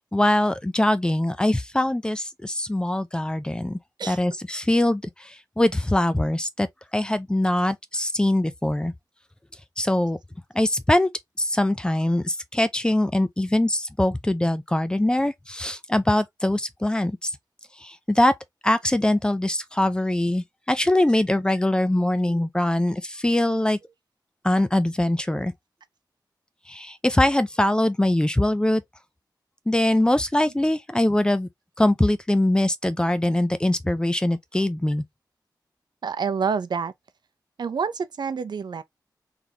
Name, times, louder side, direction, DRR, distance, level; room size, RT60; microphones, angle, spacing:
voice 1, 0.1-3.8 4.1-6.7 6.9-8.9 9.8-10.2 10.5-11.1 11.4-17.3 17.8-18.3 18.6-23.8 24.4-25.5 26.7-28.8 29.7-31.5 31.8-35.0, left 1 dB, 10° left, 0.5 m, -22 dB
voice 2, 36.0-36.9 37.6-38.8, right 6 dB, 80° right, 0.6 m, -27 dB
4.0 x 3.3 x 2.8 m
wide cardioid pair, 130°, 7 cm